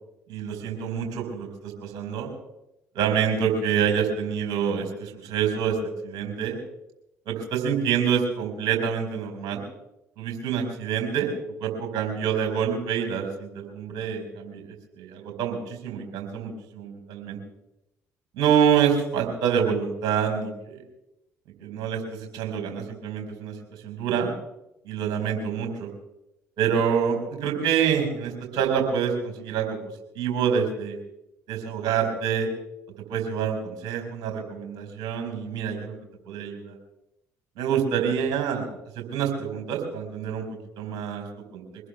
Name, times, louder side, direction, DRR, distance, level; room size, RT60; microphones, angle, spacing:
voice 1, 0.3-2.3 2.9-5.8 6.0-6.6 7.2-9.6 10.2-11.3 11.6-14.6 14.9-17.4 18.4-20.8 21.6-23.5 23.8-24.3 24.8-25.9 26.6-29.8 30.1-31.0 31.5-32.5 33.1-35.9 36.3-36.7 37.6-38.7 39.0-40.4 40.8-41.2 41.5-41.6, right 7 dB, 60° right, 3 dB, 4.7 m, -26 dB
24.0 x 19.5 x 2.3 m, 0.88 s
figure-of-eight pair, 45°, 8 cm